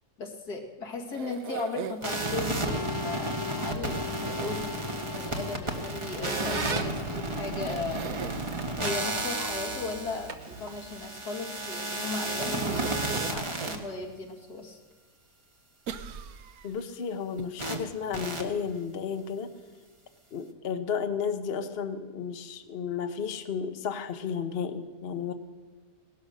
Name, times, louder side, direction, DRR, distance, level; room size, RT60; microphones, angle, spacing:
voice 1, 0.2-8.2 8.8-14.8, left 3 dB, 80° left, 0 dB, 2.6 m, -37 dB
sound 1, 1.1-2.3 4.2-5.2 7.1-7.2 7.7-8.5 12.8-13.9 14.4-14.5 15.9-16.8 17.4-17.5 17.7-17.8, right 8 dB, 70° right, 1.2 m, -39 dB
sound 2, 2.0-13.8 17.6-17.8 18.1-18.4, right 1 dB, 20° right, 1.2 m, -32 dB
Squeak, 5.7-11.2, right 4 dB, 35° right, 0.8 m, -41 dB
voice 2, 16.6-19.5 20.3-25.3, left 6 dB, 45° left, 8 dB, 0.9 m, -33 dB
18.0 x 11.0 x 6.5 m, 1.4 s
omnidirectional pair, 1.7 m